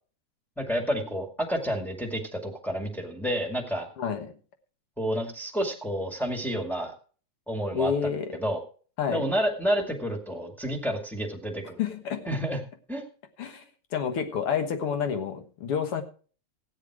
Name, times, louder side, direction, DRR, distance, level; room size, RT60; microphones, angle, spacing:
voice 1, 0.6-3.9 5.0-6.9 7.5-8.6 9.1-11.8 12.3-12.6 12.9-13.1, equal, ahead, 1.5 m, -30 dB
voice 2, 4.0-4.4 7.7-8.4 9.0-9.3 11.8-12.3 13.4-13.6 13.9-16.0, left 7 dB, 55° left, 1.9 m, -29 dB
15.0 x 9.2 x 4.8 m
omnidirectional pair, 3.4 m